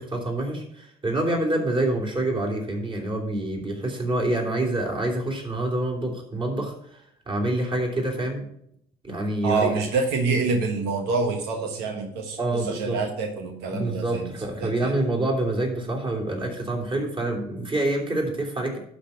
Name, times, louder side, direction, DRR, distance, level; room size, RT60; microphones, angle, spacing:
voice 1, 0.0-6.7 7.3-8.5 9.0-9.7 12.4-13.0 13.7-18.8, right 1 dB, 30° right, 0 dB, 3.3 m, -26 dB
voice 2, 9.4-14.3 14.6-14.9, right 4 dB, 90° right, 4 dB, 1.5 m, -26 dB
11.5 x 4.2 x 7.0 m, 0.73 s
cardioid pair, 110°, 17 cm